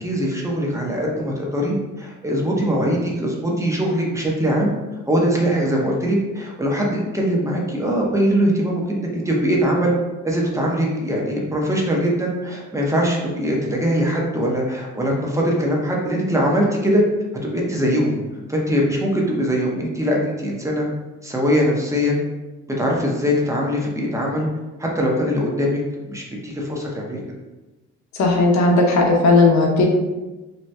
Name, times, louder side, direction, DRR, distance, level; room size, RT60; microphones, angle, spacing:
voice 1, 0.0-4.7 5.1-9.9 10.2-17.0 17.4-18.2 18.5-20.9 21.2-22.2 22.8-24.5 24.8-27.2, equal, 10° right, -2 dB, 0.7 m, -21 dB
voice 2, 28.2-29.9, left 3 dB, 65° left, 0 dB, 0.7 m, -15 dB
2.7 x 2.2 x 3.2 m, 1.1 s
cardioid pair, 90°, 30 cm